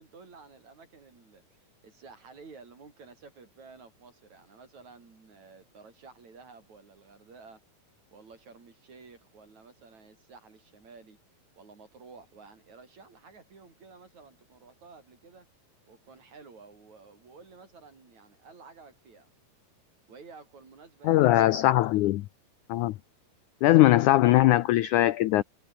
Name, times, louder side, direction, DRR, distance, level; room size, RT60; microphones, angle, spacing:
voice 1, 0.0-7.6 8.1-11.2 11.6-15.5 15.9-19.3 20.1-22.1, right 4 dB, 45° right, 6.1 m, -52 dB
voice 2, 21.0-22.2 22.7-23.0 23.6-25.4, left 15 dB, 85° left, 1.7 m, -20 dB
omnidirectional pair, 4.5 m